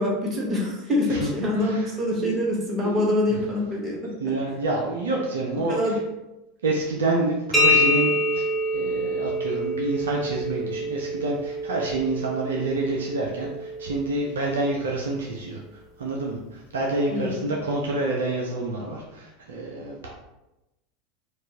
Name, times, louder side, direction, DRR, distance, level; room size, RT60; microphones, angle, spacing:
voice 1, 0.0-4.1 5.7-6.0 17.1-17.4, left 1 dB, 25° right, -3 dB, 1.1 m, -25 dB
voice 2, 1.1-1.9 2.2-2.4 2.8-3.0 4.2-6.0 6.6-8.5 8.7-20.1, right 2 dB, 70° right, -1 dB, 0.5 m, -28 dB
sound 1, 7.5-15.1, left 1 dB, ahead, 0.9 m, -26 dB
4.5 x 2.3 x 2.8 m, 0.96 s
figure-of-eight pair, 80°, 0 cm